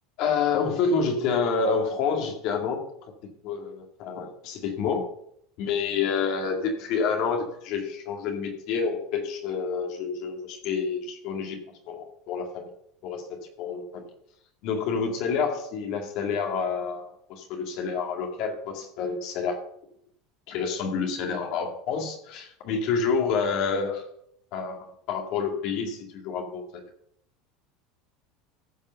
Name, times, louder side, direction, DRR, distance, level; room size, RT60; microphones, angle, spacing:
voice 1, 0.2-2.8 3.4-5.1 5.6-11.6 11.9-12.7 13.0-14.1 14.6-19.6 20.5-24.0 24.5-26.8, left 5 dB, 65° left, 3 dB, 2.3 m, -28 dB
14.5 x 5.5 x 5.7 m, 0.71 s
supercardioid pair, 95°, 0 cm